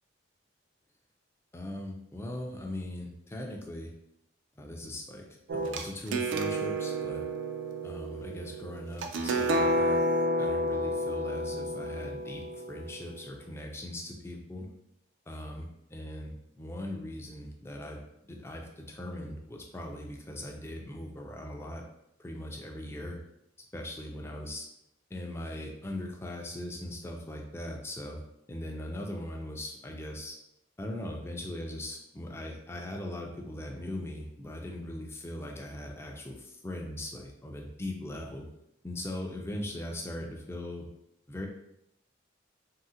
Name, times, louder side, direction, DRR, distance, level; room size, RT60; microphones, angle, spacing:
voice 1, 1.5-3.9 4.6-5.2 5.5-7.2 7.8-10.0 10.4-14.7 15.3-18.0 18.3-21.8 22.2-23.2 23.7-24.7 25.1-28.2 28.5-30.4 30.8-38.4 38.8-40.9 41.3-41.5, left 1 dB, 15° left, 1 dB, 0.3 m, -40 dB
sound 1, 5.5-13.2, equal, 70° right, 0.3 m, -30 dB
3.6 x 2.1 x 2.7 m, 0.82 s
head